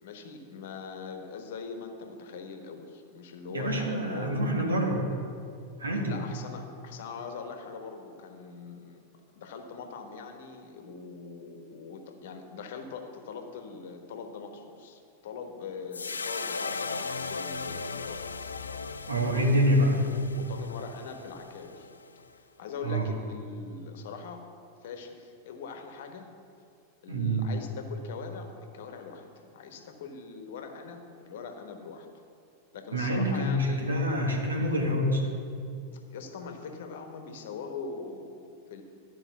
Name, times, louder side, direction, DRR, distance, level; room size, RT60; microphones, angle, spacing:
voice 1, 0.0-4.4 6.0-9.0 9.3-18.3 19.2-19.5 20.0-21.9 22.4-24.5 24.8-26.3 27.0-32.1 32.7-33.9 35.9-38.8, left 5 dB, 55° left, 5 dB, 1.1 m, -42 dB
voice 2, 3.5-5.1 5.8-6.2 19.1-20.0 22.8-23.1 27.1-27.5 32.9-35.3, equal, 75° right, 0 dB, 1.4 m, -26 dB
sound 1, 15.9-22.3, left 4 dB, 75° left, 0.3 m, -37 dB
12.0 x 4.9 x 5.9 m, 2.3 s
figure-of-eight pair, 90°, 0 cm